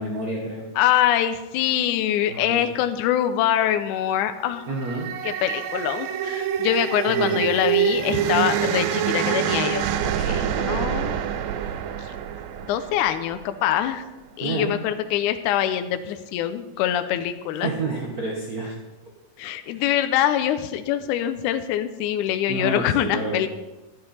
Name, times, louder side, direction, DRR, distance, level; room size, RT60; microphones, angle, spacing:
voice 1, 0.0-0.7 2.3-2.6 4.7-5.1 7.1-7.5 10.2-10.7 11.6-11.7 14.4-14.8 17.6-18.7 22.5-23.5, right 3 dB, 60° right, -2 dB, 0.9 m, -29 dB
voice 2, 0.8-4.6 5.2-11.2 12.0-12.2 12.7-14.0 14.4-17.7 19.4-23.5, left 11 dB, 80° left, 9 dB, 2.0 m, -24 dB
sound 1, 4.5-13.8, right 10 dB, 80° right, 1.6 m, -26 dB
11.5 x 10.5 x 4.2 m, 1.1 s
omnidirectional pair, 3.8 m